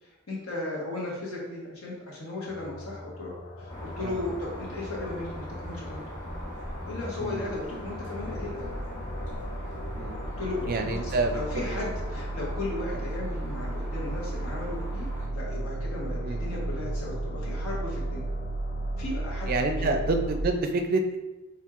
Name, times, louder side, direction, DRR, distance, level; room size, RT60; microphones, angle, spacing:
voice 1, 0.0-3.3 3.6-6.0 6.8-8.7 10.4-18.3 19.0-19.5 19.8-19.9, left 2 dB, 85° left, -4 dB, 1.3 m, -36 dB
sound 1, 2.5-20.4, right 1 dB, 40° left, 0.4 m, -35 dB
sound 2, 3.7-15.3, equal, 20° left, 1.2 m, -41 dB
voice 2, 7.2-7.5 9.9-10.2 10.7-11.8 12.9-13.0 16.2-16.6 19.5-21.2, right 2 dB, 45° right, 5 dB, 0.4 m, -28 dB
4.4 x 3.6 x 2.4 m, 1.0 s
head